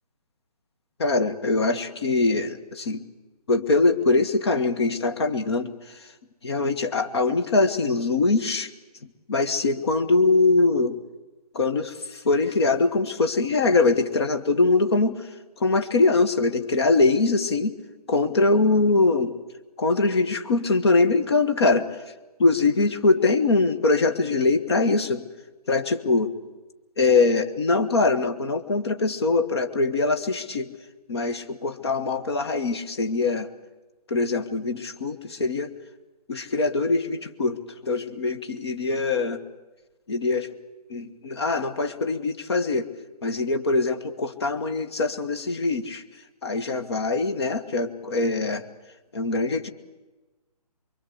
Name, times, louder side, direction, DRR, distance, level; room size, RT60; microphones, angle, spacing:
voice 1, 1.0-3.0 3.5-5.7 6.4-8.7 9.3-11.0 11.5-15.2 15.6-17.7 18.1-19.4 19.8-21.9 22.4-25.3 25.7-26.3 27.0-30.7 31.1-33.5 34.1-35.7 36.3-39.4 40.1-40.5 40.9-42.9 43.2-46.0 46.4-48.6 49.1-49.7, left 3 dB, 40° left, 8 dB, 1.7 m, -22 dB
25.0 x 23.5 x 8.1 m, 1.2 s
figure-of-eight pair, 145°, 21 cm